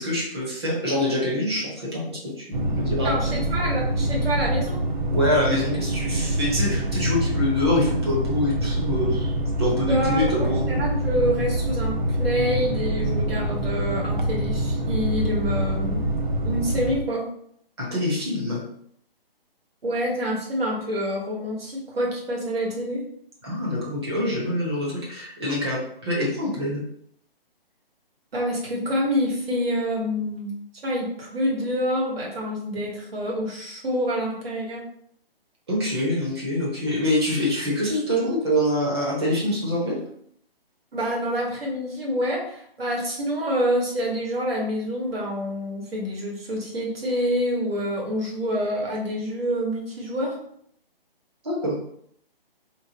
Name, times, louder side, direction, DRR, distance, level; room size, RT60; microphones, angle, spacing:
voice 1, 0.0-3.1 5.1-9.3 9.6-10.8 17.8-18.6 23.4-26.8 35.7-40.0 51.4-51.7, left 1 dB, 25° right, -4 dB, 0.8 m, -25 dB
sound 1, 2.5-17.0, right 1 dB, 55° right, 0.5 m, -25 dB
voice 2, 3.0-4.8 9.8-16.0 16.4-17.3 19.8-23.0 28.3-30.5 30.8-34.8 40.9-50.4, equal, 75° right, -2 dB, 1.4 m, -27 dB
3.0 x 2.2 x 3.8 m, 0.66 s
hypercardioid pair, 165°, 30 cm